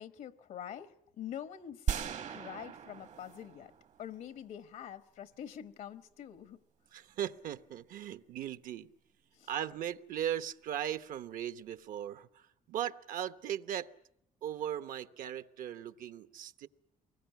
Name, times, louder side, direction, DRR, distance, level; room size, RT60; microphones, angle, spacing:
voice 1, 0.0-2.0 2.3-3.7 4.0-6.6 9.3-9.5, left 9 dB, 85° left, 1.1 m, -45 dB
sound 1, 1.9-4.2, right 7 dB, 60° right, 1.0 m, -38 dB
voice 2, 6.9-8.9 9.5-13.9 14.4-16.7, right 10 dB, 80° right, 0.9 m, -38 dB
24.0 x 21.0 x 9.2 m
cardioid pair, 125°, 14 cm